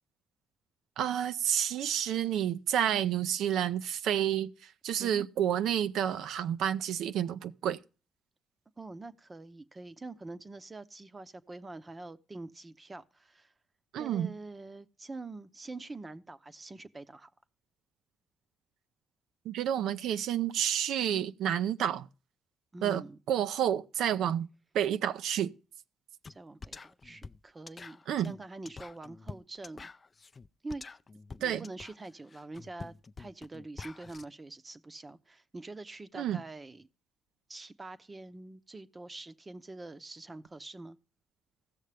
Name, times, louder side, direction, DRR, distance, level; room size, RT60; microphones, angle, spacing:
voice 1, 1.0-7.8 13.9-14.3 19.5-22.1 22.8-24.5 24.7-25.5 28.1-28.3 31.4-31.6 36.1-36.4, right 10 dB, 80° right, 0.4 m, -30 dB
voice 2, 8.8-13.5 13.9-17.3 22.7-23.2 26.3-29.9 30.6-30.8 31.4-36.9 37.5-41.0, right 2 dB, 25° right, 0.7 m, -45 dB
sound 1, 26.2-26.4 26.6-34.2, left 4 dB, 30° left, 0.4 m, -47 dB
15.5 x 6.5 x 3.3 m
cardioid pair, 90°, 0 cm